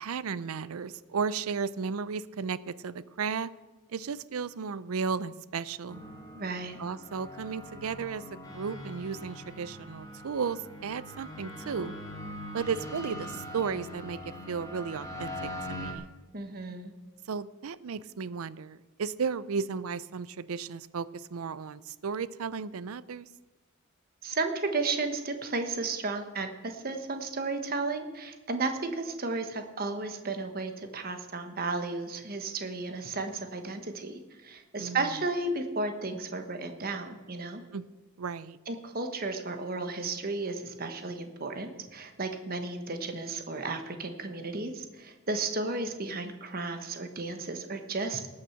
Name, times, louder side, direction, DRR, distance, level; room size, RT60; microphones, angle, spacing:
voice 1, 0.0-3.5 3.9-6.0 6.8-11.9 12.5-16.1 17.3-23.3 34.8-35.1 37.7-37.9 38.2-38.6, right 5 dB, 85° right, 17 dB, 0.5 m, -34 dB
sound 1, 5.9-15.9, equal, 15° left, 1.5 m, -42 dB
voice 2, 6.3-6.8 16.3-16.9 24.2-37.6 38.7-48.3, right 3 dB, 45° right, 6 dB, 1.2 m, -33 dB
18.5 x 6.5 x 5.8 m, 1.2 s
head